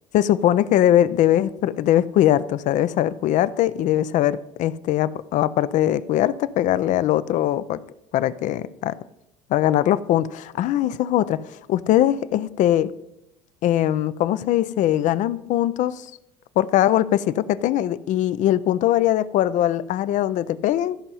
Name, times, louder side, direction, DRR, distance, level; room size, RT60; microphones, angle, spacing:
voice 1, 0.1-7.8 8.1-8.9 9.5-12.9 13.6-16.1 16.6-21.0, left 12 dB, 65° left, 0.5 m, -21 dB
13.5 x 5.5 x 5.6 m
supercardioid pair, 85°, 14 cm